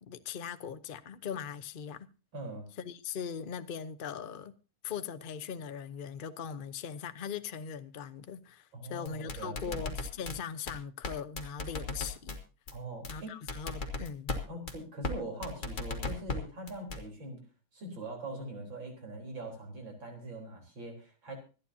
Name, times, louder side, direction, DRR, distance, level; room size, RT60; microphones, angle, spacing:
voice 1, 0.0-2.1 2.8-4.5 4.8-12.4 13.1-14.4, left 7 dB, 70° left, 0.5 m, -40 dB
voice 2, 2.3-2.7 8.7-9.8 12.7-13.4 14.5-17.4 17.7-21.4, right 2 dB, 65° right, 4.6 m, -42 dB
sound 1, 9.0-10.3 10.7-10.8 11.0-11.1 11.4-12.4 12.7-12.8 13.0-13.1 13.5-14.4 14.7-14.8 15.0-15.1 15.4-16.4 16.7-17.0, left 3 dB, 35° left, 2.3 m, -35 dB
25.5 x 10.0 x 2.7 m
omnidirectional pair, 2.2 m